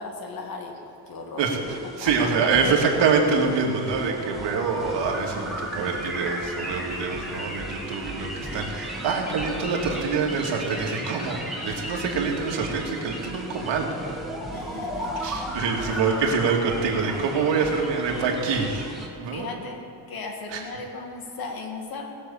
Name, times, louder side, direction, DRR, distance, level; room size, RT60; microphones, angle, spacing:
voice 1, 0.0-1.5 2.0-2.3 14.5-15.2 17.7-18.4 19.3-22.1, left 3 dB, 55° left, 2 dB, 2.2 m, -37 dB
voice 2, 1.4-14.2 15.2-18.9 19.2-19.5 20.5-20.6, right 5 dB, 80° right, 0 dB, 2.4 m, -25 dB
sound 1, 1.7-19.1, right 1 dB, ahead, 1.9 m, -35 dB
19.5 x 6.6 x 7.3 m, 2.7 s
cardioid pair, 140°, 43 cm